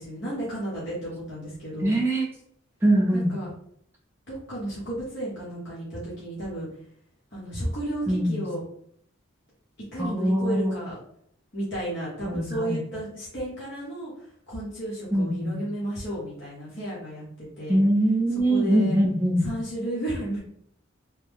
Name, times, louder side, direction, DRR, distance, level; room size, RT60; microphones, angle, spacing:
voice 1, 0.0-2.0 3.1-3.5 4.3-6.7 7.3-8.6 9.9-11.0 11.5-17.8 18.5-19.0 19.4-20.4, right 1 dB, 55° left, -8 dB, 1.1 m, -33 dB
voice 2, 1.8-2.3 2.8-3.3 8.1-8.4 10.0-10.8 12.3-12.8 15.1-15.6 17.7-19.5, right 1 dB, 10° right, -2 dB, 0.7 m, -23 dB
3.2 x 2.2 x 3.5 m, 0.67 s
head